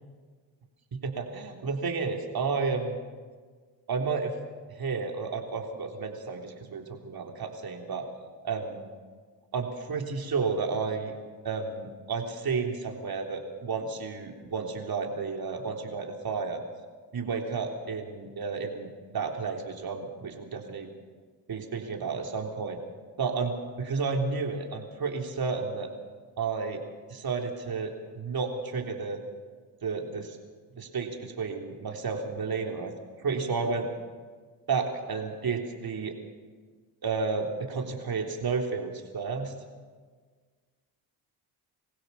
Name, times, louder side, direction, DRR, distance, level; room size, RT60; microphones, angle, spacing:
voice 1, 0.9-3.0 3.9-4.3 4.7-8.0 8.4-8.9 9.5-11.1 11.4-16.6 17.1-20.9 21.5-22.8 23.2-25.9 26.4-26.8 27.1-29.2 29.8-30.4 30.8-32.9 33.2-33.9 34.7-36.1 37.0-39.5, right 4 dB, 50° right, 3 dB, 3.7 m, -32 dB
25.5 x 16.0 x 7.1 m, 1.5 s
cardioid pair, 70°, 45 cm